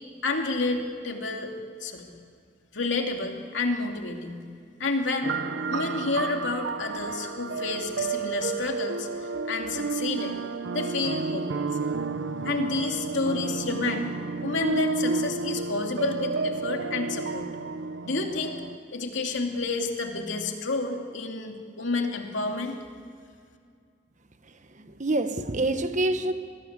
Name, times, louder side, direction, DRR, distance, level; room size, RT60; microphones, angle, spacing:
voice 1, 0.2-1.5 1.8-2.1 2.7-4.4 4.8-5.3 5.7-10.4 10.7-11.5 11.8-11.9 12.4-14.1 14.4-17.5 18.0-18.6 18.9-22.7, left 3 dB, 80° left, 2.8 m, -30 dB
sound 1, 5.2-18.8, right 4 dB, 90° right, 0.9 m, -31 dB
voice 2, 24.8-26.3, right 2 dB, 40° right, 1.2 m, -26 dB
25.5 x 20.5 x 8.1 m
head